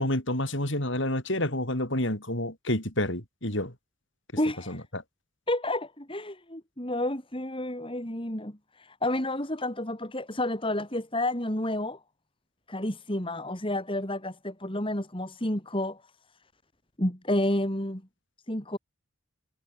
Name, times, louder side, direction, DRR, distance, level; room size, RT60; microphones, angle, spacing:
voice 1, 0.0-3.7 4.7-5.0, left 1 dB, 55° left, 7.2 m, -29 dB
voice 2, 4.4-4.8 5.5-12.0 12.7-16.0 17.0-18.0 18.5-18.8, left 1 dB, 25° left, 3.5 m, -30 dB
head